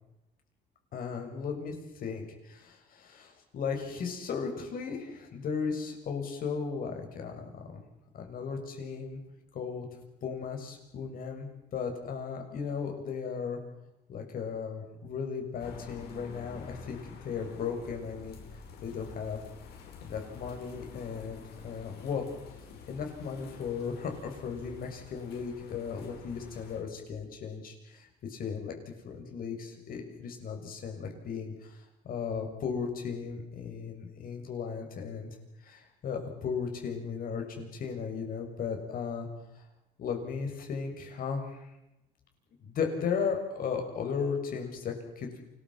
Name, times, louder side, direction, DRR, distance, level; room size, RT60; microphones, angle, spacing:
voice 1, 0.9-7.8 8.1-9.2 9.5-9.9 10.2-13.6 14.1-18.4 18.8-19.4 20.0-22.2 22.9-35.4 35.6-39.3 39.5-39.6 40.0-41.7 42.6-45.4, left 6 dB, 60° left, 3 dB, 6.7 m, -36 dB
sound 1, 15.6-26.8, left 6 dB, 75° left, 5.9 m, -49 dB
28.5 x 21.0 x 5.8 m, 0.93 s
cardioid pair, 110°, 17 cm